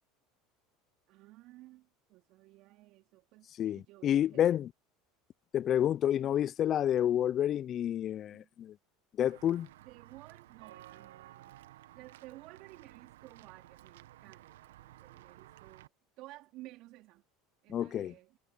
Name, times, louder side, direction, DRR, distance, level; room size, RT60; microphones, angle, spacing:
voice 1, 1.1-4.6 8.3-8.5 9.8-15.9 16.2-17.2 17.6-18.4, right 18 dB, 60° right, 4.2 m, -54 dB
voice 2, 3.6-4.7 5.5-8.7 9.2-9.7 17.7-18.1, left 10 dB, 45° left, 0.6 m, -29 dB
Walk footsteps / Bell, 9.2-15.9, right 14 dB, 75° right, 1.8 m, -55 dB
hypercardioid pair, 80°, 0 cm